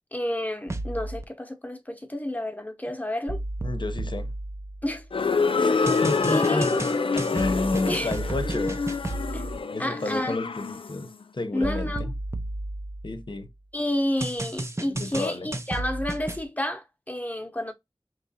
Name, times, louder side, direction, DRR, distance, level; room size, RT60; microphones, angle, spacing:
voice 1, 0.1-3.4 4.8-5.0 5.7-6.8 7.9-8.1 8.5-8.6 9.3-9.5 9.8-10.4 11.5-12.1 13.7-17.7, left 1 dB, 20° left, 0.8 m, -30 dB
sound 1, 0.7-1.2 3.3-5.1 5.9-9.6 11.6-13.5 14.2-16.4, right 1 dB, 30° right, 0.5 m, -33 dB
voice 2, 3.6-4.3 5.6-5.7 6.0-6.7 7.1-8.8 9.7-11.1 11.3-11.9 13.0-13.5 14.9-15.5, left 2 dB, 60° left, 0.8 m, -30 dB
sound 2, 5.1-11.0, left 4 dB, 90° left, 0.4 m, -26 dB
4.8 x 3.1 x 2.7 m
wide cardioid pair, 50°, 9 cm